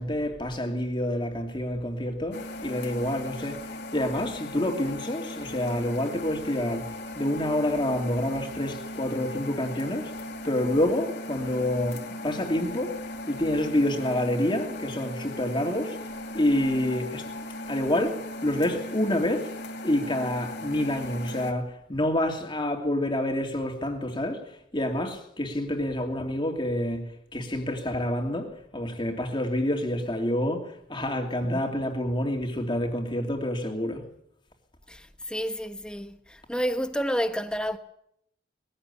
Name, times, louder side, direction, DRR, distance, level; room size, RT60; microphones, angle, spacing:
voice 1, 0.0-10.2 10.4-13.0 13.3-17.3 17.6-19.6 19.8-34.0, left 1 dB, 25° left, 2.8 m, -28 dB
sound 1, 2.3-21.5, left 1 dB, 60° left, 2.5 m, -38 dB
voice 2, 34.9-37.8, equal, 5° left, 1.2 m, -30 dB
20.5 x 15.5 x 8.6 m
head